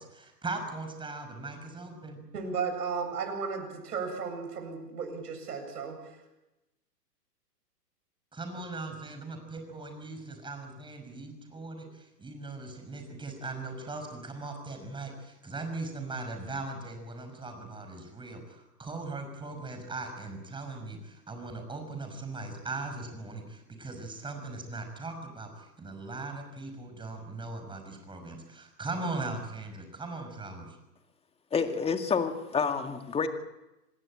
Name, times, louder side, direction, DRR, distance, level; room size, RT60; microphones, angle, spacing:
voice 1, 0.0-2.2 8.3-30.8, right 3 dB, 10° right, 5 dB, 5.5 m, -39 dB
voice 2, 2.3-6.0, right 5 dB, 70° right, 5 dB, 7.9 m, -34 dB
voice 3, 31.5-33.3, left 5 dB, 10° left, 7 dB, 1.9 m, -28 dB
26.5 x 19.5 x 8.8 m, 0.99 s
hypercardioid pair, 120°, 48 cm